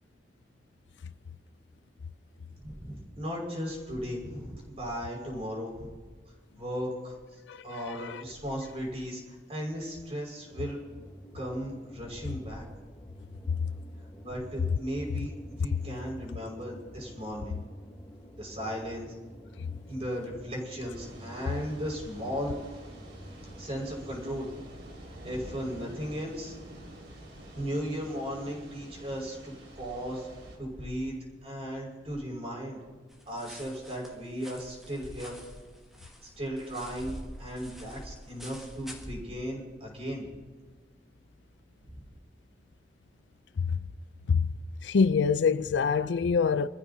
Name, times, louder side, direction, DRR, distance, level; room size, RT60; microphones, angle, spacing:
voice 1, 2.6-5.9 6.6-10.8 11.3-12.7 14.2-17.6 18.3-19.1 19.9-22.5 23.6-24.5 25.2-26.5 27.5-29.5 29.8-30.3 30.6-31.1 31.4-32.8 33.3-35.4 36.2-40.3 41.9-42.0, equal, 35° right, 5.2 m, -36 dB
voice 2, 7.5-8.2 43.6-43.8 44.3-44.5 44.8-46.7, left 5 dB, 90° left, 0.4 m, -25 dB
sound 1, 10.5-24.1, equal, 20° left, 3.0 m, -49 dB
sound 2, 20.9-30.6, right 1 dB, 80° right, 3.4 m, -48 dB
sound 3, 33.1-39.1, equal, ahead, 1.9 m, -47 dB
27.0 x 14.5 x 2.8 m
head